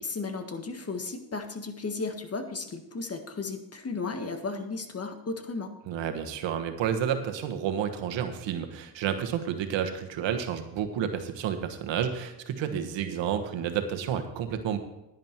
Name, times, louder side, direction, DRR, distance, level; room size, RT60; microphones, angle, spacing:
voice 1, 0.0-5.7, left 3 dB, 35° left, 7 dB, 1.6 m, -35 dB
voice 2, 5.9-14.8, right 8 dB, 90° right, 6 dB, 1.4 m, -30 dB
11.0 x 10.5 x 4.6 m, 0.89 s
cardioid pair, 75°, 43 cm